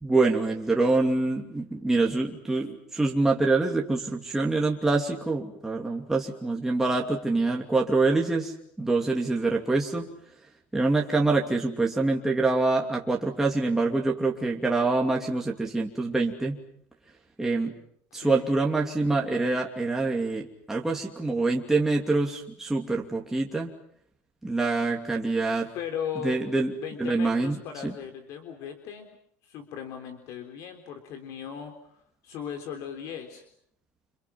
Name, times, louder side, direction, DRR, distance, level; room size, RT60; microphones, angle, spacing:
voice 1, 0.0-8.5 8.8-10.1 10.7-16.6 17.4-17.8 18.1-23.7 24.4-25.7 26.2-26.7 27.0-27.6 27.8-27.9, right 3 dB, 5° right, -1 dB, 2.7 m, -25 dB
voice 2, 18.1-18.5 25.7-26.4 26.8-29.1 29.4-33.5, left 8 dB, 55° left, 7 dB, 3.7 m, -37 dB
29.5 x 27.5 x 6.0 m, 0.66 s
cardioid pair, 140°, 6 cm